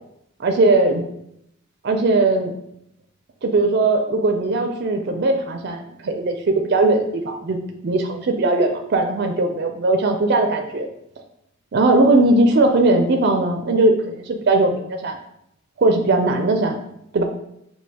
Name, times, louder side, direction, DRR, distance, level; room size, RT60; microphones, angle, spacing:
voice 1, 0.4-1.0 1.8-2.5 3.4-7.6 7.8-10.9 11.7-15.2 15.8-16.8 17.1-17.2, right 2 dB, 50° right, 4 dB, 0.4 m, -19 dB
6.2 x 2.8 x 2.8 m, 0.77 s
head